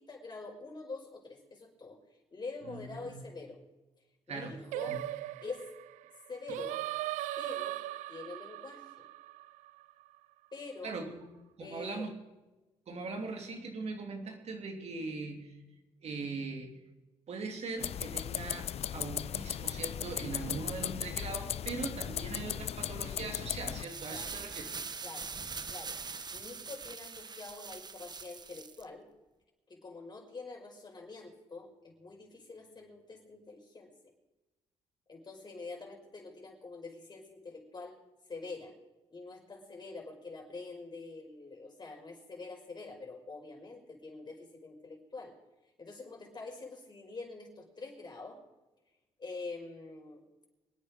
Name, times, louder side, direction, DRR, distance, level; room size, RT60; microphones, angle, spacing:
voice 1, 0.0-3.6 4.3-5.0 5.4-5.7 6.3-6.8 7.4-7.8 8.1-8.9 10.5-11.0 11.6-12.1 24.1-24.4 25.0-25.3 25.7-26.0 26.3-29.1 29.7-33.9 35.1-38.0 38.3-38.7 39.1-45.3 45.8-48.4 49.2-50.2, left 3 dB, 35° left, 1 dB, 5.6 m, -45 dB
voice 2, 2.6-3.2 4.3-4.6 4.9-5.0 10.8-11.2 11.6-12.1 12.9-15.6 16.0-16.7 17.3-24.6, right 3 dB, 60° right, 3 dB, 3.0 m, -40 dB
Singing, 4.7-10.0, right 15 dB, 90° right, 0.4 m, -39 dB
sound 1, 17.8-23.8, left 10 dB, 55° left, 0.5 m, -37 dB
sound 2, 23.7-28.8, right 5 dB, 35° right, 1.1 m, -42 dB
25.5 x 9.1 x 5.2 m, 1.1 s
cardioid pair, 70°, 12 cm